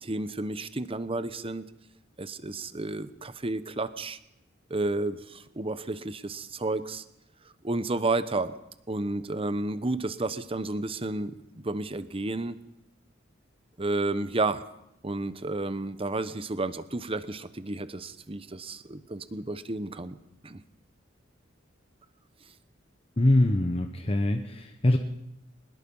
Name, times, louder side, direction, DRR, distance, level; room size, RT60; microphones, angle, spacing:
voice 1, 0.0-1.7 2.2-4.2 4.7-7.0 7.6-8.5 8.9-11.3 11.6-12.6 13.8-14.6 15.0-20.2 20.4-20.6, right 2 dB, 30° right, 13 dB, 1.0 m, -31 dB
voice 2, 23.2-25.0, left 1 dB, 30° left, 5 dB, 1.1 m, -23 dB
23.0 x 20.5 x 5.5 m, 0.86 s
head